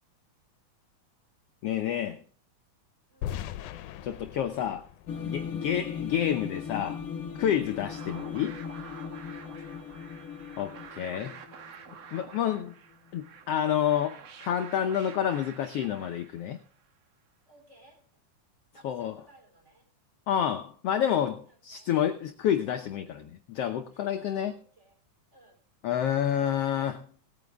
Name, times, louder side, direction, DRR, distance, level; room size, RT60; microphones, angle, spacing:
voice 1, 1.6-2.2 4.0-4.9 5.2-7.0 7.4-8.6 10.6-11.4 12.1-12.7 13.1-16.6 18.8-19.2 20.3-24.6 25.8-27.1, left 9 dB, 70° left, 7 dB, 1.6 m, -29 dB
voice 2, 3.1-3.4 5.8-5.9 9.4-9.8 17.5-18.0 18.7-19.9 21.5-21.9 23.9-24.9 25.3-25.6, right 1 dB, 20° right, 3 dB, 3.6 m, -59 dB
sound 1, 3.2-6.2, left 11 dB, 90° left, 2.2 m, -40 dB
sound 2, 5.1-12.7, left 7 dB, 50° left, 1.1 m, -38 dB
sound 3, 7.4-16.8, right 7 dB, 60° right, 2.3 m, -49 dB
19.0 x 9.3 x 3.5 m, 0.43 s
omnidirectional pair, 3.4 m